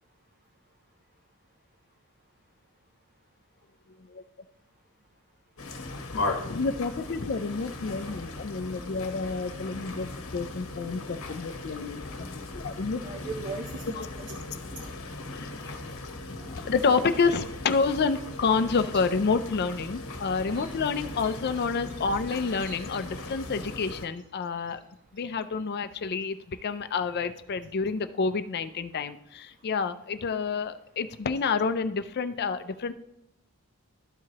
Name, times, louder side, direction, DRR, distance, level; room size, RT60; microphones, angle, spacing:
sound 1, 5.6-24.1, left 2 dB, 65° left, 1.0 m, -38 dB
voice 1, 6.5-12.0 12.3-13.0 14.0-14.1 15.3-15.9 16.3-24.8 25.1-32.9, left 4 dB, 45° left, 11 dB, 0.4 m, -29 dB
voice 2, 12.9-14.4 20.5-20.7 21.9-22.8 29.8-29.9, right 3 dB, 35° right, 3 dB, 0.5 m, -40 dB
13.0 x 4.7 x 2.9 m, 0.84 s
head